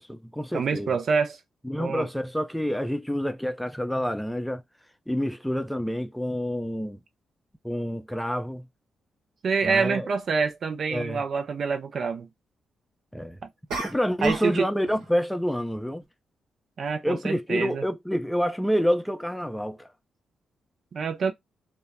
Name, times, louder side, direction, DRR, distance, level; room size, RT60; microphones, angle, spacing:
voice 1, 0.0-1.0 1.6-4.6 5.1-7.0 7.6-8.7 9.6-10.1 10.9-11.2 13.1-13.4 13.8-16.0 17.0-19.9, equal, 5° left, 0.4 m, -28 dB
voice 2, 0.5-1.4 1.8-2.1 9.4-12.3 14.2-14.7 16.8-17.8 20.9-21.3, right 5 dB, 60° right, 0.5 m, -26 dB
sound 1, 9.6-9.8 13.7-14.6 14.8-15.2, right 3 dB, 80° right, 1.0 m, -35 dB
2.1 x 2.0 x 3.4 m
hypercardioid pair, 40°, 0 cm